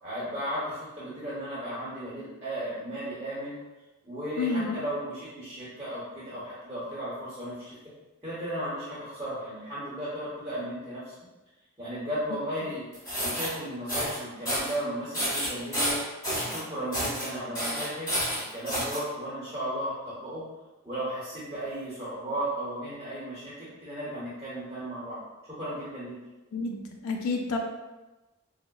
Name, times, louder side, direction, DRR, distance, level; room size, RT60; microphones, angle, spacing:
voice 1, 0.0-3.6 4.0-7.8 8.2-11.1 11.8-12.8 13.2-16.0 16.3-18.1 18.5-20.4 20.8-25.2 25.5-26.2, right 1 dB, 15° right, -10 dB, 0.8 m, -35 dB
voice 2, 4.4-4.8 26.5-27.6, left 3 dB, 80° left, 2 dB, 0.4 m, -30 dB
sound 1, 12.9-13.5 13.9-14.2 14.5-14.8 15.1-16.6 16.9-17.3 17.5-19.0, equal, 15° left, 1.3 m, -29 dB
4.5 x 2.0 x 2.2 m, 1.1 s
head